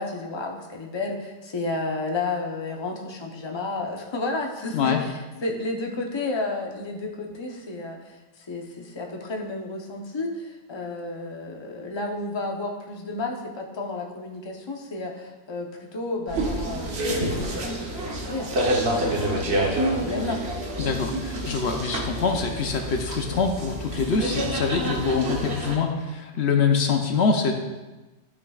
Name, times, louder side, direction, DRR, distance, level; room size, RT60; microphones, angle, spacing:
voice 1, 0.0-16.9 17.2-20.4, left 2 dB, 25° left, 1 dB, 0.8 m, -32 dB
sound 1, 16.3-25.8, right 1 dB, 65° right, 1.3 m, -28 dB
voice 2, 20.8-27.5, left 5 dB, 70° left, 4 dB, 1.0 m, -24 dB
12.0 x 6.1 x 2.4 m, 1.1 s
omnidirectional pair, 1.1 m